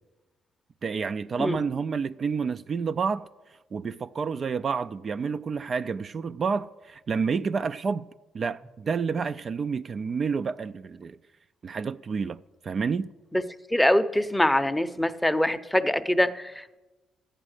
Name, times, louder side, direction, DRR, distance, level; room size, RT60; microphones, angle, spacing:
voice 1, 0.8-3.3 3.7-8.1 8.3-11.2 11.6-12.4 12.6-13.1, right 5 dB, 45° right, 0.3 m, -29 dB
voice 2, 13.7-16.8, left 1 dB, 5° left, 0.6 m, -24 dB
12.5 x 8.9 x 6.5 m
cardioid pair, 90°, 0 cm